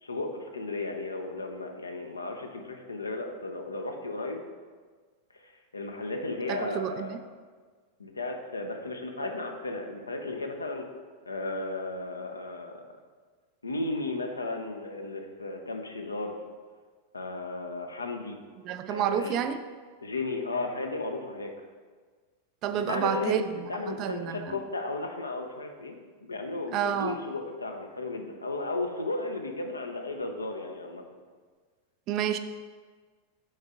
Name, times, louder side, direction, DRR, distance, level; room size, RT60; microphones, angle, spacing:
voice 1, 0.0-4.4 5.4-7.2 8.0-10.9 11.3-12.8 13.6-16.4 17.1-18.4 18.9-19.4 20.0-21.5 22.7-31.1, left 2 dB, 80° left, 4 dB, 0.6 m, -34 dB
voice 2, 6.5-7.2 18.6-19.6 22.6-24.6 26.7-27.2 32.1-32.4, right 9 dB, 40° right, 10 dB, 0.4 m, -30 dB
6.4 x 4.4 x 3.7 m, 1.5 s
figure-of-eight pair, 90°, 0 cm